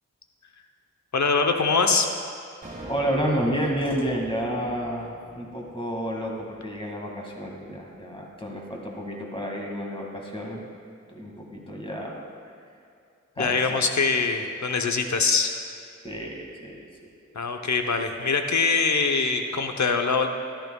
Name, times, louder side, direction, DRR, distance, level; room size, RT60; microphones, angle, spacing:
voice 1, 1.1-2.1 13.4-15.5 17.3-20.3, left 4 dB, 70° left, 5 dB, 0.8 m, -23 dB
sound 1, 2.6-7.0, right 1 dB, 30° right, 1.8 m, -44 dB
voice 2, 2.9-10.6 11.1-12.2 13.4-13.9 16.0-16.8, equal, 20° left, -1 dB, 2.0 m, -30 dB
14.0 x 11.5 x 2.3 m, 2.4 s
wide cardioid pair, 50°, 29 cm